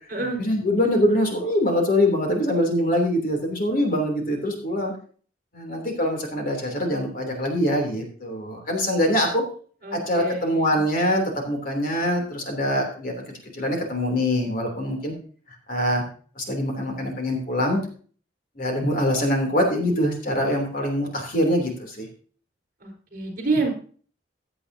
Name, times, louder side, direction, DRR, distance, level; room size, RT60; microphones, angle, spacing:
voice 1, 0.1-4.9 5.5-9.4 9.9-13.2 13.5-15.1 15.7-16.0 16.4-17.8 18.6-22.0, left 1 dB, 50° left, 2 dB, 3.2 m, -24 dB
voice 2, 9.8-10.6 22.8-23.7, right 3 dB, 50° right, 2 dB, 4.5 m, -27 dB
15.5 x 8.4 x 2.8 m, 0.42 s
head